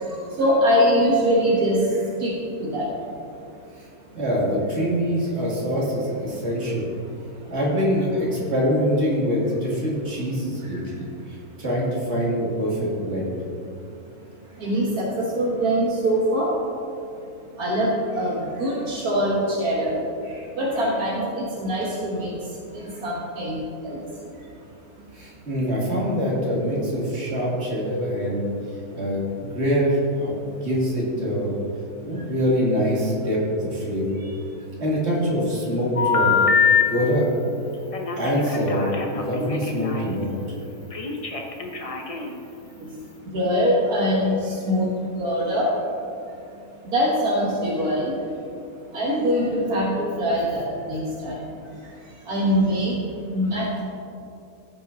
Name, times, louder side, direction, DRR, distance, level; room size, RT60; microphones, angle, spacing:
voice 1, 0.4-1.8 2.2-2.3 2.6-2.9 14.6-16.5 17.6-20.0 20.6-22.3 22.7-23.6 23.8-24.0 43.3-44.9 45.2-45.7 46.9-48.1 48.9-51.4 52.3-52.9 53.3-53.8, equal, 80° right, -4 dB, 1.8 m, -23 dB
voice 2, 4.2-6.9 7.5-11.1 11.6-13.3 25.1-28.4 28.9-29.2 29.5-31.5 32.0-34.2 34.8-36.4 36.9-37.3 38.2-40.3, equal, 45° right, -5 dB, 2.6 m, -24 dB
Telephone, 36.0-36.8 37.9-40.1 40.9-42.4, left 6 dB, 30° left, 0.7 m, -23 dB
15.5 x 5.7 x 4.0 m, 2.6 s
omnidirectional pair, 1.6 m